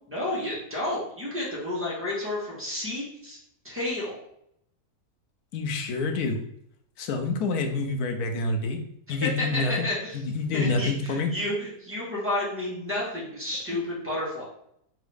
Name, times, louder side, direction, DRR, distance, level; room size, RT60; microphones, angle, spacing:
voice 1, 0.1-3.4 3.6-4.2 9.4-10.2 10.5-14.5, left 1 dB, 10° right, -7 dB, 1.6 m, -31 dB
voice 2, 5.5-6.4 7.0-8.8 9.1-9.7 10.1-11.3, left 3 dB, 75° left, 5 dB, 1.2 m, -27 dB
3.8 x 3.6 x 3.5 m, 0.72 s
omnidirectional pair, 1.6 m